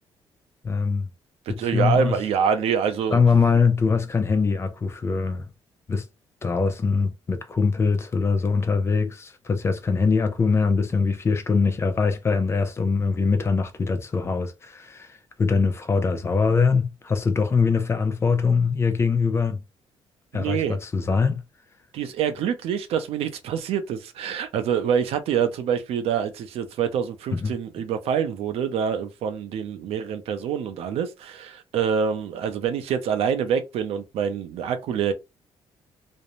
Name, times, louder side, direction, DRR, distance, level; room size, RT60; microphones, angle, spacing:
voice 1, 0.6-1.1 1.5-2.2 3.1-5.4 5.9-6.1 6.4-19.6 20.3-21.4 27.3-27.5, left 5 dB, 25° left, 0.4 m, -22 dB
voice 2, 1.5-3.2 20.3-20.8 21.9-35.1, right 7 dB, 80° right, 0.5 m, -26 dB
2.5 x 2.0 x 2.9 m
cardioid pair, 150°, 10 cm